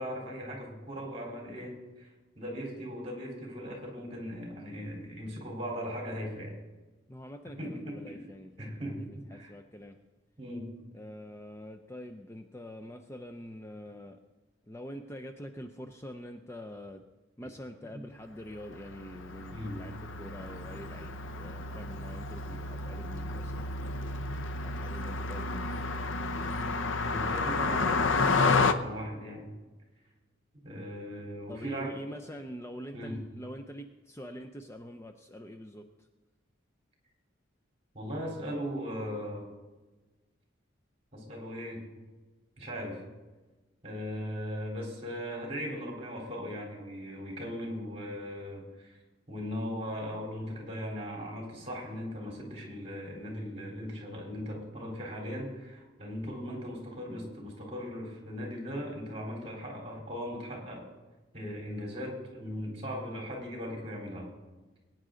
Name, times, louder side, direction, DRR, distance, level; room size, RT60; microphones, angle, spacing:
voice 1, 0.0-2.1 2.4-6.5 7.6-8.2 8.6-9.5 10.4-10.7 19.5-19.8 27.0-29.5 30.6-32.1 32.9-33.2 37.9-39.4 41.1-41.8 42.6-43.0 43.8-49.0 49.3-60.8 61.3-64.3, equal, 30° right, -1 dB, 3.7 m, -38 dB
voice 2, 7.1-10.0 10.9-14.2 14.7-17.0 17.4-23.7 24.6-25.7 31.5-36.1, equal, 15° left, 5 dB, 0.5 m, -45 dB
Car passing by, 18.6-28.7, left 3 dB, 80° left, 0.7 m, -31 dB
21.0 x 9.5 x 3.8 m, 1.2 s
head